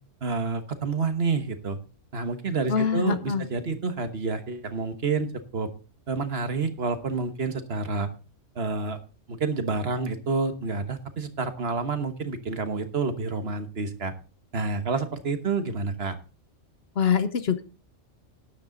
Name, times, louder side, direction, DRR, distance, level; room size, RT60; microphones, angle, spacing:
voice 1, 0.2-1.8 2.1-5.3 5.5-5.7 6.1-8.1 8.5-9.0 9.3-14.1 14.5-16.2, right 4 dB, 55° right, 8 dB, 1.4 m, -28 dB
voice 2, 2.7-3.4 17.0-17.6, left 7 dB, 55° left, 12 dB, 1.0 m, -24 dB
12.5 x 10.0 x 3.9 m, 0.34 s
omnidirectional pair, 1.3 m